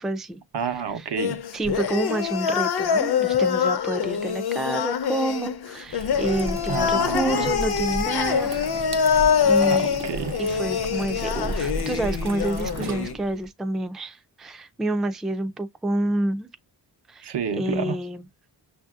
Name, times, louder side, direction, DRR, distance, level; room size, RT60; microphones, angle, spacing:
voice 1, 0.0-0.4 1.0-1.1 1.5-8.7 9.0-9.9 10.4-16.5 17.1-18.3, right 1 dB, ahead, 0.3 m, -28 dB
voice 2, 0.5-1.4 6.7-7.5 9.6-10.4 17.2-18.0, right 7 dB, 75° right, 0.9 m, -29 dB
sound 1, 1.2-13.1, left 7 dB, 70° left, 0.7 m, -24 dB
sound 2, 5.8-13.4, right 2 dB, 45° right, 0.6 m, -34 dB
6.4 x 2.7 x 2.3 m
wide cardioid pair, 150°, 41 cm